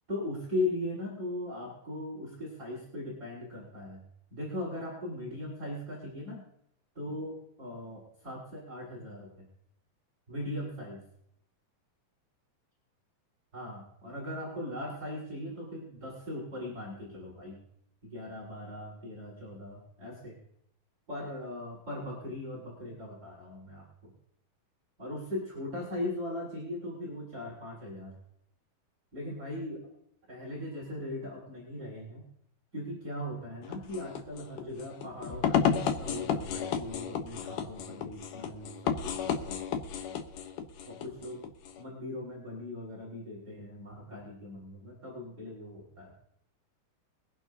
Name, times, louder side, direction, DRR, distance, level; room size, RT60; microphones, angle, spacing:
voice 1, 0.1-4.0 4.3-6.4 6.9-9.3 10.3-11.0 13.5-17.6 18.0-20.4 21.1-24.1 25.0-28.1 29.1-29.9 30.3-32.2 32.7-39.7 40.8-41.4 41.8-46.1, left 1 dB, 20° right, -5 dB, 6.0 m, -39 dB
sound 1, 33.6-41.8, left 8 dB, 75° left, 1.9 m, -32 dB
24.0 x 11.0 x 2.7 m, 0.73 s
omnidirectional pair, 5.0 m